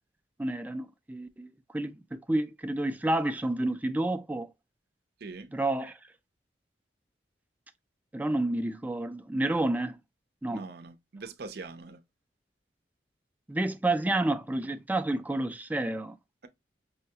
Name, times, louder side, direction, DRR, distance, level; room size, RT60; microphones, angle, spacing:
voice 1, 0.4-4.5 5.5-6.0 8.1-10.0 10.4-10.6 13.5-16.2, right 2 dB, 10° right, 0.4 m, -30 dB
voice 2, 5.2-5.5 10.5-12.0, right 3 dB, 60° right, 0.6 m, -42 dB
5.7 x 2.2 x 2.7 m
head